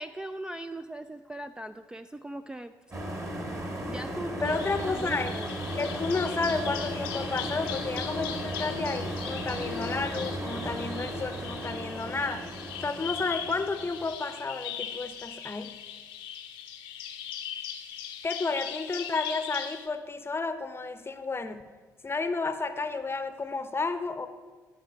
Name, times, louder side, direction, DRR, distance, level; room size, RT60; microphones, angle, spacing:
voice 1, 0.0-2.7 3.9-5.5, right 1 dB, 10° right, 9 dB, 0.3 m, -39 dB
sound 1, 2.9-14.1, equal, 30° right, 1.7 m, -35 dB
Bird vocalization bird call bird song, 4.4-19.9, left 9 dB, 70° left, 0.7 m, -40 dB
voice 2, 4.4-5.3 5.8-12.5 12.8-15.8 18.2-21.6 22.0-24.3, left 3 dB, 25° left, 10 dB, 0.7 m, -31 dB
10.5 x 4.8 x 5.8 m, 1.4 s
figure-of-eight pair, 45°, 9 cm